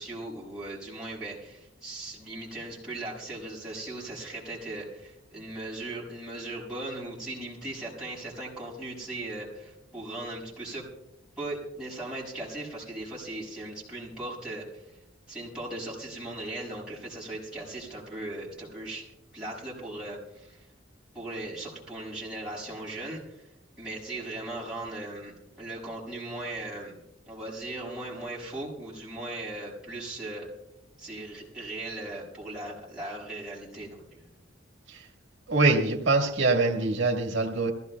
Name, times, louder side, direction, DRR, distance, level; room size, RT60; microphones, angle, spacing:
voice 1, 0.0-10.8 11.4-14.8 15.3-19.0 19.3-20.6 21.1-23.4 23.8-25.3 25.6-26.9 27.3-30.5 31.0-34.2, right 2 dB, 5° right, -7 dB, 6.0 m, -38 dB
voice 2, 35.5-37.7, right 3 dB, 75° right, 0 dB, 1.8 m, -24 dB
24.0 x 16.0 x 2.3 m, 0.88 s
head